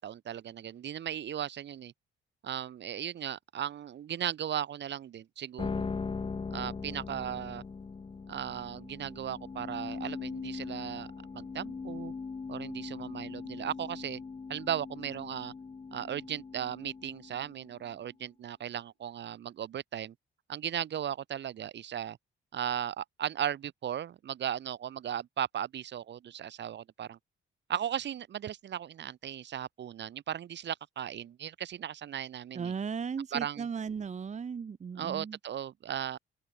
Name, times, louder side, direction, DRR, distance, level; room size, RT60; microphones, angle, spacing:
voice 1, 0.0-1.9 2.4-5.9 6.5-7.6 8.3-11.1 11.3-12.1 12.5-14.2 14.5-15.5 15.9-20.1 20.5-22.2 22.5-27.2 27.7-32.7 33.3-33.7 34.9-36.2, right 10 dB, 60° right, 2.4 m, -36 dB
sound 1, 5.6-17.9, left 4 dB, 25° left, 1.2 m, -40 dB
voice 2, 32.5-35.4, right 6 dB, 35° right, 1.1 m, -36 dB
open air
cardioid pair, 90°, 20 cm